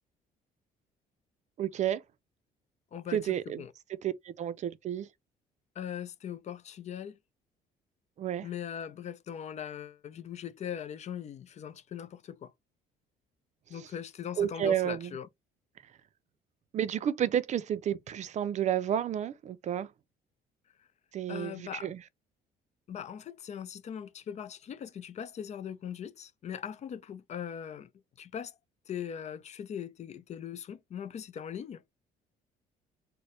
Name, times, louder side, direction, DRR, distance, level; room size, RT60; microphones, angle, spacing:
voice 1, 1.6-2.0 3.1-3.6 4.0-5.1 8.2-8.5 13.7-13.8 14.4-15.1 16.7-19.9 21.1-22.0, right 10 dB, 45° right, 0.4 m, -31 dB
voice 2, 2.9-3.7 5.8-7.2 8.4-12.5 13.7-15.3 20.8-20.9 21.3-21.9 22.9-27.9 28.2-28.6 28.9-31.8, left 8 dB, 40° left, 0.5 m, -40 dB
4.1 x 2.1 x 3.1 m
cardioid pair, 110°, 17 cm